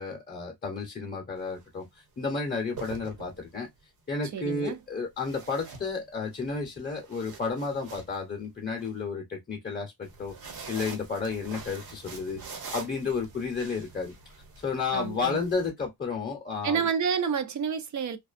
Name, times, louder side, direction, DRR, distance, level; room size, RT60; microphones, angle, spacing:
voice 1, 0.0-1.8 2.2-3.7 4.1-10.3 10.7-12.4 12.7-14.1 14.6-16.9, left 4 dB, 25° left, 0.6 m, -32 dB
sound 1, 1.4-1.6 2.5-3.7 5.2-6.4 6.8-8.9 10.0-15.7, right 5 dB, 70° right, 1.2 m, -44 dB
voice 2, 4.3-4.8 14.9-15.4 16.6-18.2, right 6 dB, 50° right, 0.5 m, -29 dB
2.5 x 2.3 x 2.4 m
wide cardioid pair, 155°, 39 cm